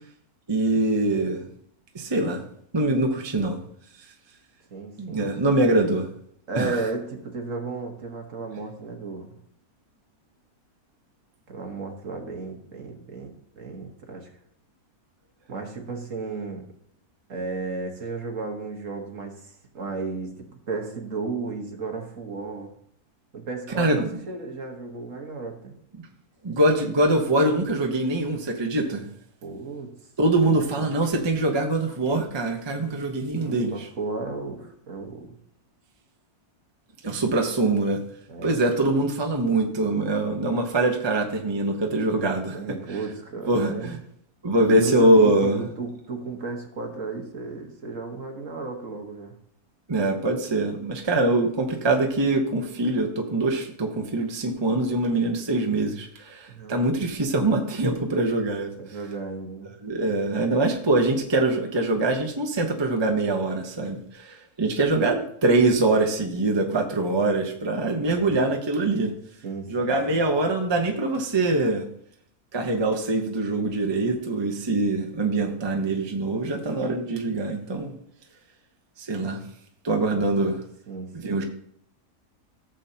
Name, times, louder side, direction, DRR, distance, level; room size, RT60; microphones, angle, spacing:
voice 1, 0.5-1.5 1.9-2.4 2.7-3.6 5.0-6.1 6.5-6.8 23.7-24.1 26.4-29.0 30.2-33.9 37.0-38.0 38.4-42.6 42.9-43.0 43.5-44.0 44.4-45.6 49.9-58.7 59.8-69.1 69.7-71.8 72.5-77.9 79.0-79.4 79.8-80.6 81.1-81.4, right 2 dB, 20° right, 3 dB, 0.8 m, -23 dB
voice 2, 4.7-5.3 6.5-9.3 11.5-14.3 15.5-16.7 17.3-22.7 23.3-25.7 29.4-29.9 30.4-30.8 33.4-35.4 38.3-38.6 42.5-44.0 44.7-49.3 56.5-56.8 58.7-59.7 65.0-65.1 68.0-68.4 69.4-70.2 80.9-81.4, right 3 dB, 55° right, 3 dB, 1.7 m, -34 dB
14.5 x 7.3 x 2.8 m, 0.66 s
omnidirectional pair, 1.6 m